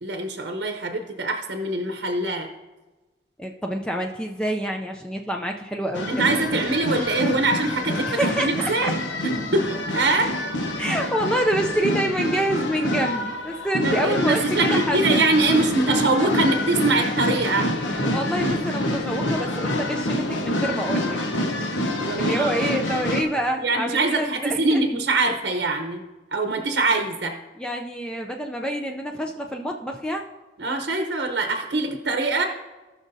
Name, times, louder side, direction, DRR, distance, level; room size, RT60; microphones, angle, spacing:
voice 1, 0.0-2.5 6.1-8.9 9.2-9.6 9.9-10.3 13.8-17.7 22.0-22.5 23.6-26.0 26.3-27.3 30.6-32.4, right 2 dB, 60° right, 4 dB, 0.8 m, -23 dB
voice 2, 3.4-6.1 8.1-8.9 10.8-14.4 14.7-15.0 18.0-21.2 22.2-24.8 27.6-30.3, right 1 dB, 5° left, 2 dB, 0.4 m, -27 dB
sound 1, 5.9-23.2, left 1 dB, 80° left, 1.0 m, -26 dB
18.5 x 6.2 x 2.7 m, 1.2 s
head